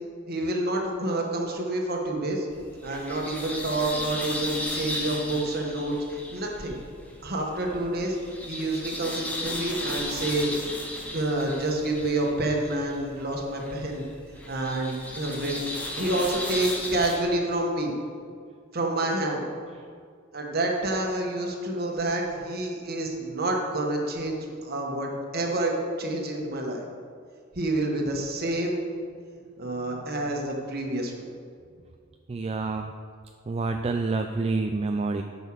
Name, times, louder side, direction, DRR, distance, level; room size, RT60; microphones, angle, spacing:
voice 1, 0.3-2.5 2.8-6.8 7.2-8.2 8.5-10.5 11.1-14.0 14.5-17.9 18.7-19.4 20.3-26.8 27.5-28.8 29.6-31.3, right 1 dB, 50° right, 1 dB, 1.4 m, -28 dB
sound 1, 2.5-17.2, left 1 dB, 5° left, 1.1 m, -36 dB
voice 2, 32.3-32.9 33.5-35.2, right 3 dB, 30° right, 5 dB, 0.4 m, -28 dB
9.2 x 5.5 x 6.2 m, 2.1 s
head